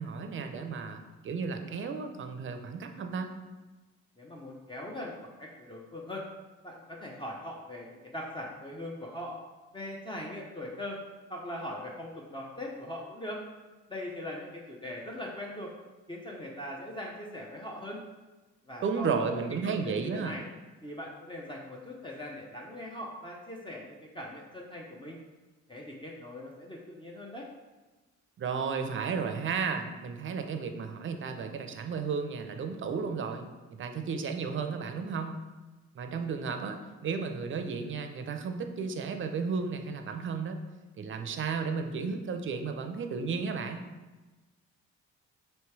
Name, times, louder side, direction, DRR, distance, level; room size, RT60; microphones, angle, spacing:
voice 1, 0.0-3.3 18.8-20.4 28.4-35.4 35.9-40.6 41.0-43.8, right 5 dB, 40° right, 6 dB, 0.5 m, -33 dB
voice 2, 4.2-6.2 6.6-9.4 9.7-11.0 11.3-13.4 13.9-15.7 16.1-18.0 18.7-20.4 20.8-25.2 25.7-27.5, left 1 dB, 15° left, -2 dB, 0.6 m, -41 dB
3.1 x 3.1 x 4.6 m, 1.2 s
cardioid pair, 90°, 30 cm